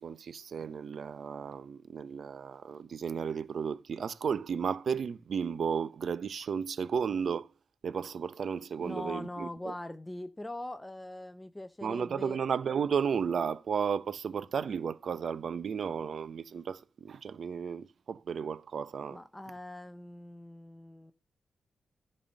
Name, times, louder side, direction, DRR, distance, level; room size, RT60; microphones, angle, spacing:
voice 1, 0.0-7.5 7.8-9.7 11.8-19.2, right 6 dB, 60° right, 0.6 m, -33 dB
voice 2, 8.8-12.4 19.1-21.1, left 1 dB, 10° left, 0.6 m, -42 dB
11.0 x 4.3 x 6.4 m
cardioid pair, 85°, 0 cm